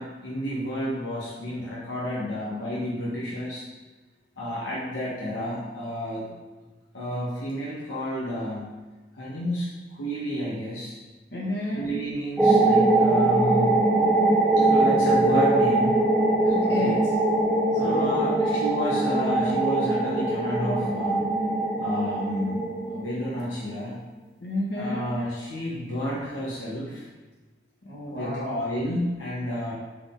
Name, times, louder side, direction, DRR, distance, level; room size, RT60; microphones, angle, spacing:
voice 1, 0.0-3.6 4.4-6.3 6.9-8.7 9.1-10.9 11.7-13.8 14.6-16.0 16.6-17.0 17.7-21.2 21.8-22.6 22.9-24.0 24.7-27.0 28.1-29.7, equal, 85° left, -7 dB, 1.2 m, -31 dB
voice 2, 11.3-11.9 16.4-17.1 17.8-18.3 24.4-25.2 27.8-28.5, left 1 dB, 65° left, -4 dB, 1.6 m, -31 dB
sound 1, 12.4-23.5, right 2 dB, ahead, 0.7 m, -22 dB
6.4 x 4.0 x 3.8 m, 1.2 s
head